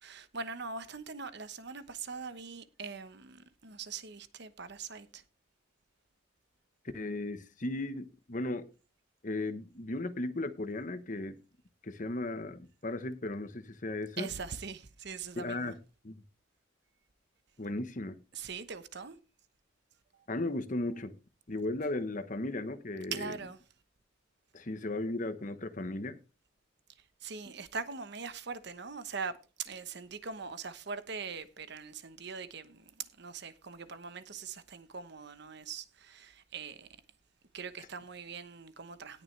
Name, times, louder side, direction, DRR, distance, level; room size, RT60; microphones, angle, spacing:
voice 1, 0.0-5.2 14.2-15.8 18.3-19.2 20.1-20.3 23.1-23.6 26.9-36.9 37.5-39.2, right 5 dB, 55° right, 1.0 m, -42 dB
voice 2, 6.9-8.7 9.2-11.4 11.8-14.3 15.4-15.7 16.0-16.1 17.6-18.2 20.3-21.2 21.5-23.2 24.5-26.2, left 2 dB, 40° left, 1.0 m, -36 dB
18.0 x 6.6 x 3.3 m
head